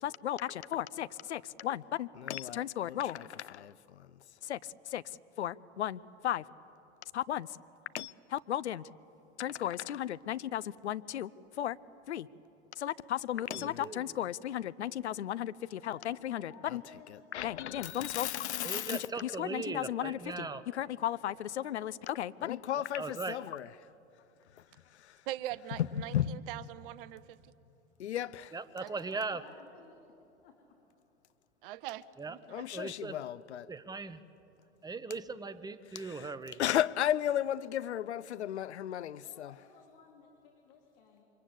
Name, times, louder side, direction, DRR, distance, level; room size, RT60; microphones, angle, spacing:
voice 1, 0.0-4.1 4.4-6.4 7.1-7.6 7.9-8.9 9.4-11.8 12.1-12.3 12.8-16.8 17.1-20.5 20.7-23.7 25.8-26.4 28.0-28.5 32.5-33.7 35.9-36.3 36.6-39.5, left 11 dB, 70° left, 0.8 m, -35 dB
voice 2, 13.5-14.0 18.6-20.6 23.0-23.4 28.5-29.4 32.2-32.4 32.7-33.2 33.7-34.2 34.8-36.6, right 4 dB, 10° right, 1.0 m, -39 dB
voice 3, 15.8-17.2 28.8-30.0 30.4-30.8 39.2-41.2, left 6 dB, 50° left, 3.9 m, -57 dB
voice 4, 25.3-27.4 28.8-28.9 31.6-32.6, right 14 dB, 50° right, 1.1 m, -42 dB
28.5 x 24.0 x 8.3 m
figure-of-eight pair, 90°, 35 cm